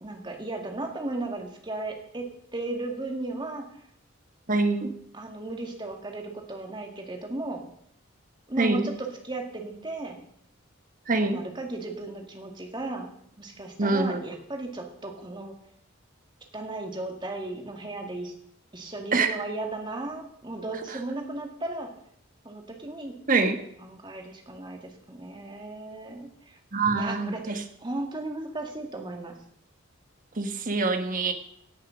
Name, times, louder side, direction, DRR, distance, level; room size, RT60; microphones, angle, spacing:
voice 1, 0.0-2.3 2.5-3.6 5.1-7.6 8.5-10.2 11.1-13.1 13.4-15.5 16.5-18.3 18.7-21.9 22.4-23.1 23.8-26.6 26.9-29.3, right 2 dB, 20° right, 3 dB, 2.0 m, -35 dB
voice 2, 4.5-4.9 8.6-8.9 11.1-11.4 13.8-14.2 19.1-19.3 23.3-23.6 26.7-27.6 30.4-31.3, right 3 dB, 40° right, 7 dB, 1.4 m, -24 dB
17.5 x 6.7 x 6.4 m, 0.71 s
head